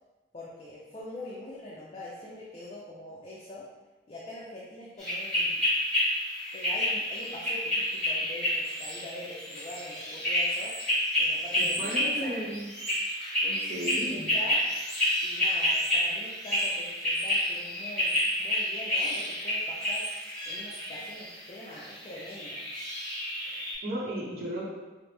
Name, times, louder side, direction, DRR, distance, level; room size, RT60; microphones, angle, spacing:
voice 1, 0.3-3.7 4.1-5.7 6.5-10.8 11.2-12.3 13.7-14.6 15.2-20.0 20.5-22.6, left 1 dB, 35° left, -5 dB, 0.4 m, -43 dB
sound 1, 5.0-23.7, left 1 dB, 5° left, 1.4 m, -30 dB
voice 2, 11.6-12.7 13.4-14.4 23.5-24.7, equal, 55° right, -5 dB, 0.8 m, -35 dB
4.8 x 2.0 x 3.2 m, 1.2 s
head